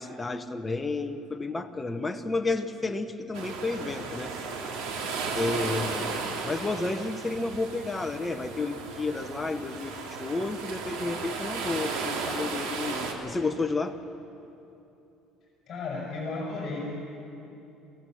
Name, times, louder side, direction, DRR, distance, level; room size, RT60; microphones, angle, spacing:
voice 1, 0.0-4.3 4.7-5.0 5.3-14.0, left 3 dB, 15° left, 7 dB, 1.0 m, -31 dB
sound 1, 3.3-13.1, right 4 dB, 85° right, 2.6 m, -35 dB
voice 2, 15.7-16.8, left 3 dB, 35° left, -3 dB, 5.7 m, -34 dB
24.0 x 16.0 x 7.8 m, 2.8 s
cardioid pair, 150°, 0 cm